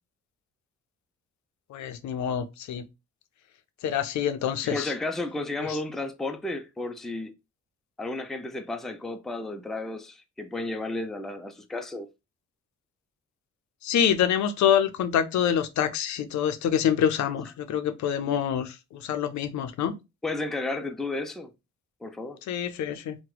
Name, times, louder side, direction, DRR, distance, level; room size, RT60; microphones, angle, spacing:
voice 1, 1.7-2.8 3.8-4.9 5.7-5.8 13.8-18.7 19.0-19.9 22.5-23.2, left 9 dB, 70° left, 0.6 m, -26 dB
voice 2, 4.6-7.3 8.0-12.1 20.2-21.5 22.0-22.4, left 2 dB, ahead, 0.4 m, -33 dB
2.8 x 2.2 x 3.8 m
cardioid pair, 90°, 30 cm